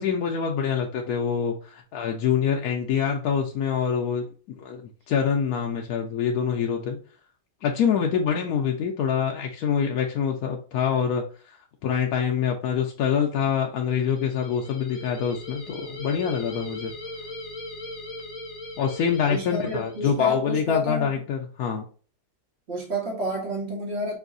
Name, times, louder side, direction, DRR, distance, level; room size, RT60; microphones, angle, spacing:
voice 1, 0.0-4.3 4.6-4.8 5.1-7.0 7.6-16.9 18.8-21.8, left 7 dB, 70° left, 1 dB, 1.0 m, -25 dB
sound 1, 13.9-20.3, left 1 dB, 50° left, 1.3 m, -39 dB
voice 2, 19.3-21.2 22.7-24.2, left 2 dB, 40° right, 0 dB, 1.6 m, -29 dB
4.9 x 2.6 x 2.5 m, 0.39 s
omnidirectional pair, 1.7 m